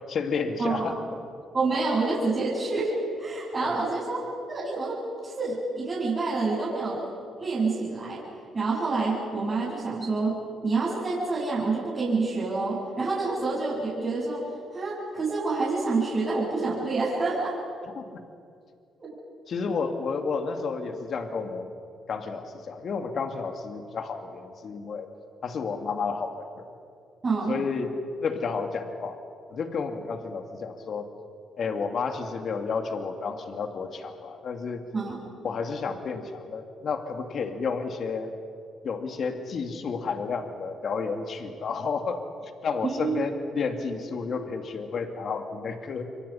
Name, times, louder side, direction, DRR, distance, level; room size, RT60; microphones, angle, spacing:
voice 1, 0.1-1.0 3.6-3.8 17.9-18.2 19.5-21.7 22.1-25.1 25.4-26.7 27.5-27.9 28.2-29.2 29.5-31.1 31.6-34.8 35.4-38.3 38.8-42.2 42.6-46.1, left 5 dB, 55° left, 6 dB, 2.3 m, -31 dB
voice 2, 0.6-0.9 1.5-4.2 4.5-5.0 5.2-7.0 7.4-8.2 8.5-17.6 19.0-19.1 27.2-27.6 34.9-35.2 42.8-43.2, right 3 dB, 35° right, -9 dB, 7.6 m, -27 dB
29.0 x 24.0 x 5.8 m, 2.3 s
cardioid pair, 90°, 0 cm